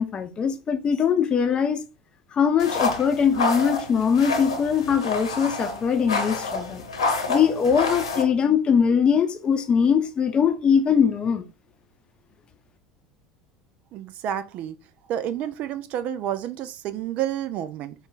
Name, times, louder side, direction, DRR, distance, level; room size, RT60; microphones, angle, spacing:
voice 1, 0.0-1.8 2.3-6.8 7.3-11.5, left 7 dB, 35° left, 0.6 m, -21 dB
sound 1, 2.6-8.2, left 3 dB, 80° left, 1.0 m, -28 dB
voice 2, 13.9-14.8 15.1-17.9, right 10 dB, 50° right, 0.4 m, -30 dB
5.3 x 2.4 x 3.9 m
figure-of-eight pair, 70°, 3 cm